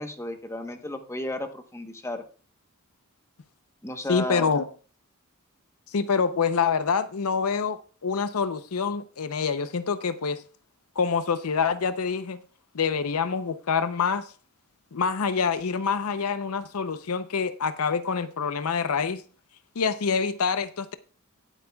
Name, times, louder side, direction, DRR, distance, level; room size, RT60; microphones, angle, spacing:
voice 1, 0.0-2.2 3.8-4.4, left 1 dB, 10° left, 1.0 m, -33 dB
voice 2, 4.1-4.7 5.9-10.4 11.0-12.4 12.7-14.3 14.9-19.2 19.8-20.9, left 5 dB, 75° left, 0.6 m, -26 dB
19.0 x 8.3 x 2.3 m
head